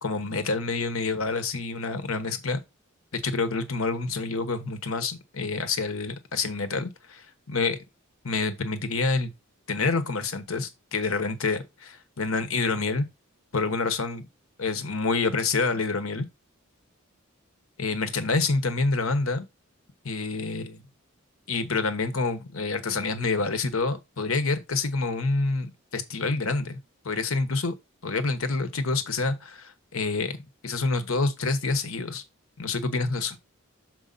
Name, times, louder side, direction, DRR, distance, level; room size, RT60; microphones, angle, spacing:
voice 1, 0.0-2.6 3.1-7.8 8.2-9.3 9.7-13.1 13.5-14.3 14.6-16.2 17.8-19.5 20.0-20.8 21.5-26.8 27.0-27.7 28.0-32.2 32.6-33.4, left 3 dB, 75° left, 1.2 m, -27 dB
6.4 x 4.9 x 4.1 m
head